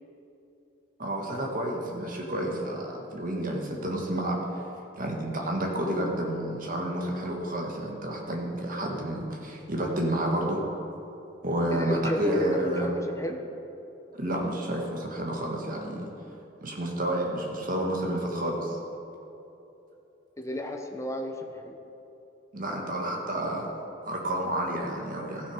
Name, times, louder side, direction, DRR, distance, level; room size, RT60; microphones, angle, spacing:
voice 1, 1.0-4.7 5.0-10.8 11.4-12.9 14.2-16.1 16.6-18.8 22.5-23.7 24.1-25.5, right 1 dB, 50° right, 0 dB, 1.7 m, -30 dB
voice 2, 11.7-13.4 20.4-21.8, equal, 15° left, 4 dB, 0.9 m, -33 dB
15.0 x 6.3 x 5.0 m, 2.9 s
head